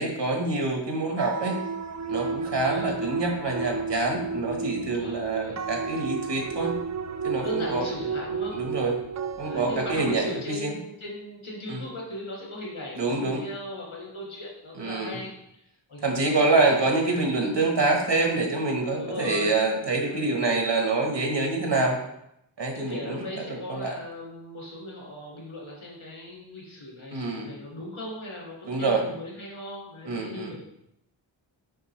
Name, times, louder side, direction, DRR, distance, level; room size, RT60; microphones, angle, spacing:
voice 1, 0.0-1.6 2.1-6.7 7.2-7.8 8.5-8.9 9.4-10.3 10.6-10.7 11.7-11.8 13.0-13.4 14.8-15.1 16.0-22.0 22.6-23.9 27.1-27.5 28.6-29.0 30.0-30.5, right 3 dB, 60° right, 1 dB, 1.5 m, -26 dB
sound 1, 1.2-10.2, right 5 dB, 40° right, 0.4 m, -32 dB
voice 2, 4.9-5.6 7.4-8.6 9.4-17.3 19.0-19.5 20.0-20.4 22.7-30.7, left 1 dB, 90° left, -4 dB, 2.6 m, -38 dB
6.6 x 5.0 x 3.3 m, 0.80 s
wide cardioid pair, 55°, 47 cm